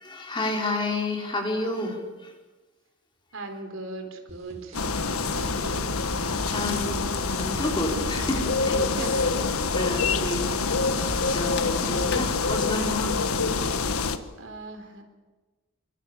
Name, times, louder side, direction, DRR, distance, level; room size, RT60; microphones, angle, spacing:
voice 1, 0.0-2.3 6.5-7.0 7.4-8.9 9.7-10.5 11.2-13.2, left 2 dB, 20° left, 1 dB, 4.8 m, -30 dB
voice 2, 3.3-5.9 8.9-9.3 9.7-9.9 10.3-10.5 12.0-12.2 14.4-15.0, right 2 dB, 65° right, 5 dB, 4.0 m, -39 dB
sound 1, 4.3-11.4, right 1 dB, 30° right, 3.3 m, -48 dB
sound 2, 4.7-14.2, left 4 dB, 80° left, 1.6 m, -26 dB
sound 3, 11.6-13.4, left 4 dB, 55° left, 1.6 m, -40 dB
27.5 x 24.5 x 7.5 m, 1.2 s
head